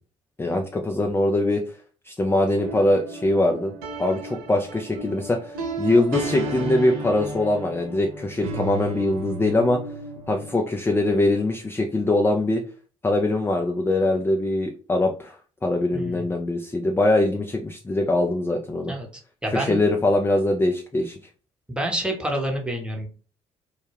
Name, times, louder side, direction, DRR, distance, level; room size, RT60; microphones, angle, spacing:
voice 1, 0.4-1.6 2.1-3.7 4.0-9.8 10.3-12.6 13.0-15.3 15.6-18.9 19.5-21.1, left 2 dB, 15° left, 3 dB, 0.4 m, -22 dB
sound 1, 2.6-10.6, right 2 dB, 70° right, 0.6 m, -34 dB
voice 2, 15.9-16.3 18.9-19.1 19.4-19.9 21.7-23.1, right 1 dB, 5° right, 1 dB, 0.9 m, -27 dB
2.2 x 2.1 x 3.2 m, 0.39 s
hypercardioid pair, 50°, 16 cm